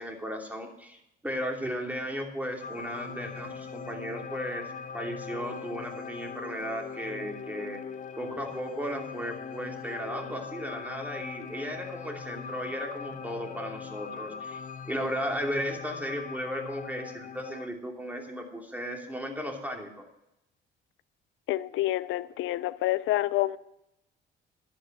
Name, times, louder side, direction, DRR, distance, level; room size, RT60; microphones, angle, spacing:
voice 1, 0.0-4.7 4.9-7.8 8.2-14.6 14.9-20.0, equal, 10° right, 2.9 m, -35 dB
sound 1, 2.6-17.7, left 6 dB, 40° left, 0.5 m, -41 dB
voice 2, 21.5-23.6, left 16 dB, 90° left, 0.5 m, -28 dB
11.5 x 9.2 x 5.4 m
cardioid pair, 90°, 20 cm